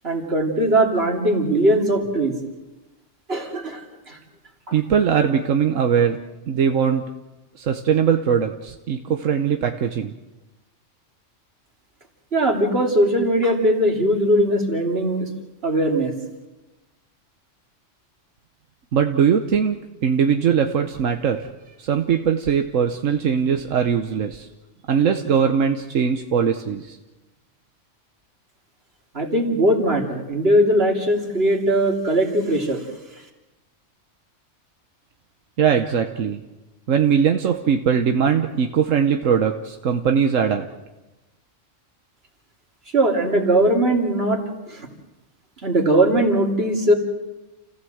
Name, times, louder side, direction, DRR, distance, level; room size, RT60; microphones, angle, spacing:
voice 1, 0.0-2.3 3.3-4.2 4.7-4.8 12.3-15.3 15.6-16.1 29.1-32.8 42.9-44.9 45.6-46.9, right 1 dB, 50° right, 1 dB, 3.3 m, -20 dB
voice 2, 4.7-6.2 6.5-7.0 7.6-10.1 18.9-21.4 21.8-24.5 24.9-27.0 35.6-36.4 36.9-40.6, right 7 dB, 85° right, 5 dB, 1.4 m, -20 dB
29.5 x 15.5 x 7.9 m, 1.1 s
omnidirectional pair, 1.3 m